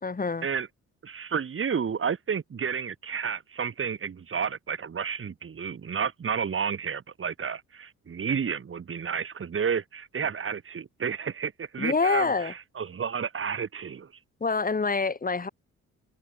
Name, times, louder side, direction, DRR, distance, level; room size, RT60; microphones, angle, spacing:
voice 1, 0.0-0.5 11.8-12.5 14.4-15.5, left 4 dB, 30° left, 4.5 m, -26 dB
voice 2, 1.0-14.1, right 6 dB, 45° right, 3.7 m, -31 dB
open air
cardioid pair, 90°, 30 cm